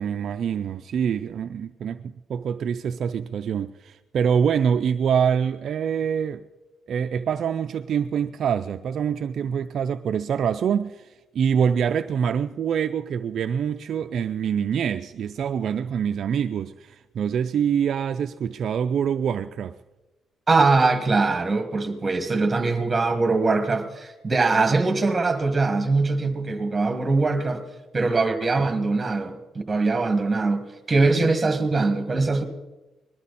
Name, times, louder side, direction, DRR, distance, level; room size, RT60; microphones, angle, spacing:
voice 1, 0.0-6.5 6.9-19.8, right 7 dB, 60° right, 0.4 m, -25 dB
voice 2, 20.5-27.6 27.9-32.4, right 3 dB, 20° right, 2.0 m, -22 dB
21.0 x 13.0 x 4.2 m
cardioid pair, 105°, 0 cm